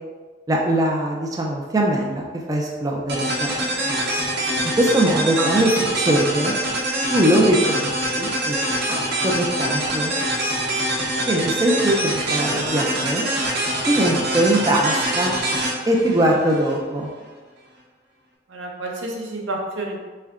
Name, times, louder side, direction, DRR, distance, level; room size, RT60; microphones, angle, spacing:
voice 1, 0.5-3.9 4.8-6.6 7.1-8.6 8.9-10.2 11.3-13.3 13.9-15.4 15.9-17.1, right 1 dB, 20° right, -1 dB, 0.4 m, -21 dB
sound 1, 3.1-16.7, right 1 dB, 55° right, 0.8 m, -24 dB
voice 2, 12.3-12.7 18.5-20.0, right 2 dB, 85° right, 0 dB, 0.7 m, -30 dB
3.5 x 3.3 x 3.6 m, 1.4 s
head